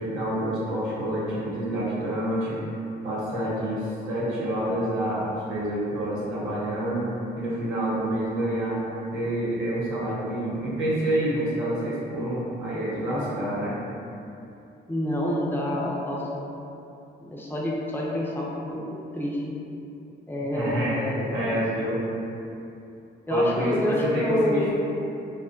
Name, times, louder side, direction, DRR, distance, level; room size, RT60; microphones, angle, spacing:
voice 1, 0.0-2.6 3.0-7.1 7.4-8.8 9.1-13.8 20.5-22.0 23.3-24.7, right 1 dB, 85° right, -8 dB, 0.8 m, -27 dB
voice 2, 14.9-16.4 17.2-18.9 19.1-19.4 20.3-21.4 23.3-24.7, left 1 dB, 10° left, -4 dB, 0.4 m, -28 dB
2.6 x 2.3 x 2.4 m, 2.7 s
cardioid pair, 90°, 20 cm